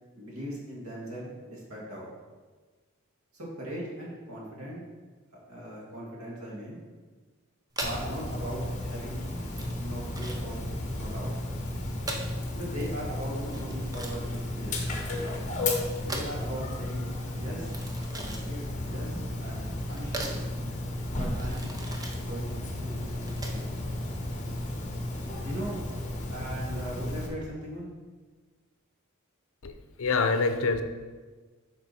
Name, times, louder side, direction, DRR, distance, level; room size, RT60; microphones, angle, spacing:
voice 1, 0.1-2.1 3.3-4.8 5.5-6.8 7.8-9.2 9.8-10.6 10.9-11.3 12.5-14.8 15.1-15.4 16.0-17.1 17.3-17.7 18.1-20.4 21.1-21.7 22.2-23.8 25.4-25.8 26.3-27.9, right 1 dB, 90° right, -4 dB, 2.5 m, -39 dB
sound 1, 7.7-23.8, right 2 dB, 20° right, 0.8 m, -41 dB
Dog, 7.8-27.3, left 1 dB, 35° left, 1.1 m, -34 dB
voice 2, 29.6-30.8, left 4 dB, 70° left, 8 dB, 0.6 m, -26 dB
7.8 x 5.4 x 4.3 m, 1.4 s
head